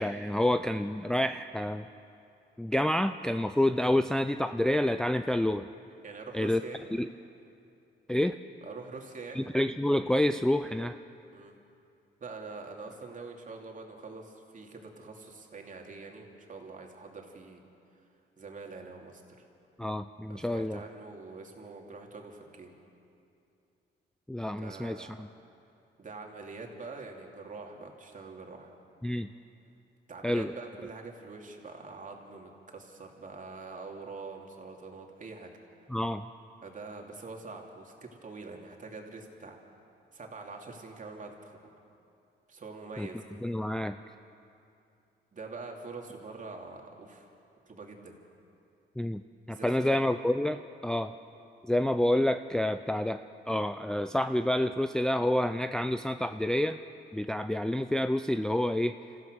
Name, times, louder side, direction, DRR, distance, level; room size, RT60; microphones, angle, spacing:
voice 1, 0.0-1.9 2.6-5.7 6.3-6.6 6.9-7.1 8.1-8.4 9.4-11.0 19.8-20.8 24.3-25.3 29.0-29.3 30.2-30.5 35.9-36.2 43.0-43.1 43.4-44.0 49.0-49.2 49.5-51.1 51.6-53.2 53.5-56.8 57.1-58.9, left 1 dB, 5° left, 8 dB, 0.4 m, -28 dB
voice 2, 6.0-6.9 8.6-9.5 11.3-11.5 12.2-17.6 18.4-19.2 20.3-22.7 24.5-25.1 26.0-28.7 30.1-35.5 36.6-39.6 40.1-41.6 42.5-43.4 45.3-47.3 47.7-48.1 49.5-49.8, right 3 dB, 40° right, 1 dB, 2.8 m, -44 dB
27.0 x 15.0 x 6.4 m, 2.6 s
cardioid pair, 90°, 20 cm